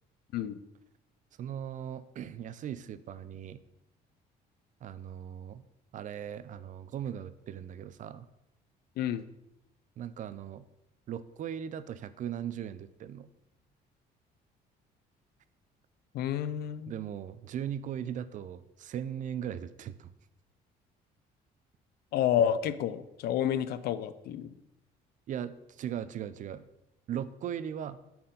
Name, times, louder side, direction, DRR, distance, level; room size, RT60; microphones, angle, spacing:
voice 1, 1.4-3.6 4.8-5.7 5.9-8.3 10.0-10.7 11.1-13.3 16.9-20.1 25.3-26.7 27.1-28.0, right 9 dB, 50° right, 14 dB, 0.4 m, -38 dB
voice 2, 16.1-16.9 22.1-24.5, left 10 dB, 70° left, 14 dB, 0.5 m, -29 dB
7.5 x 4.3 x 3.9 m, 0.88 s
cardioid pair, 110°, 17 cm